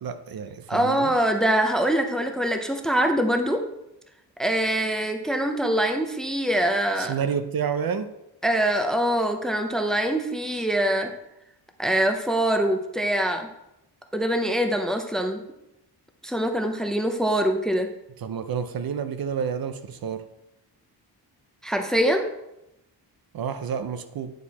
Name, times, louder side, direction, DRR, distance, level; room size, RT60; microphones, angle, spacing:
voice 1, 0.0-1.1 7.0-8.1 18.2-20.2 23.3-24.3, right 7 dB, 60° right, 9 dB, 0.6 m, -29 dB
voice 2, 0.7-3.6 4.4-7.1 8.4-11.1 11.8-13.5 14.1-15.4 16.2-17.9 21.6-22.3, right 1 dB, ahead, 5 dB, 0.6 m, -24 dB
9.4 x 4.5 x 4.1 m, 0.87 s
wide cardioid pair, 135°, 40 cm